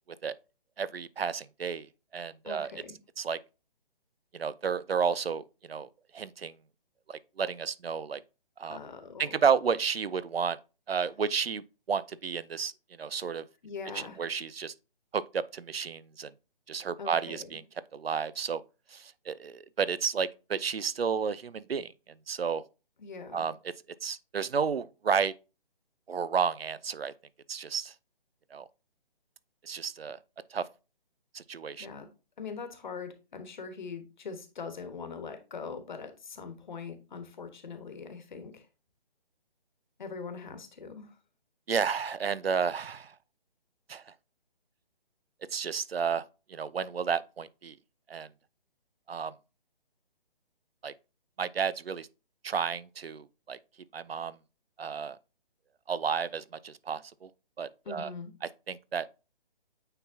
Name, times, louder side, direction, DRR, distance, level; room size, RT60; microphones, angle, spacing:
voice 1, 0.8-2.7 3.2-3.4 4.3-5.9 6.1-6.6 7.1-8.2 8.6-8.8 9.2-10.6 10.9-12.7 13.0-13.5 13.9-14.7 15.1-16.3 16.7-17.6 17.9-18.6 18.9-22.6 23.3-23.6 24.0-25.3 26.1-27.1 27.5-27.9 28.5-28.7 29.6-30.2 30.5-30.7 31.3-31.9 41.7-43.1 43.9-44.1 45.5-46.2 46.5-47.8 48.1-48.3 49.1-49.3 50.8-50.9 51.4-52.1 52.4-53.6 53.9-54.4 54.8-55.2 55.9-57.3 57.6-58.1 58.7-59.1, right 6 dB, 80° right, 0.5 m, -31 dB
voice 2, 2.4-3.0 8.7-9.4 13.6-14.2 17.0-17.5 23.0-23.5 31.8-32.1 32.4-38.7 40.0-41.2 57.8-58.3, left 5 dB, 50° left, 1.3 m, -42 dB
8.9 x 3.9 x 2.7 m
figure-of-eight pair, 140°, 30 cm